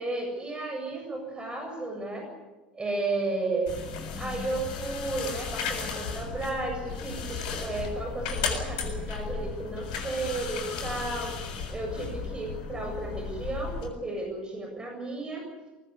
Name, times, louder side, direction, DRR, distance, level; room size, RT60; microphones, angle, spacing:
voice 1, 0.0-2.2 2.7-3.7 4.2-11.4 11.7-15.5, right 2 dB, 20° right, 2 dB, 7.6 m, -33 dB
sound 1, 3.7-13.9, left 5 dB, 60° left, 7.0 m, -35 dB
24.5 x 19.0 x 9.7 m, 1.2 s
figure-of-eight pair, 70°, 5 cm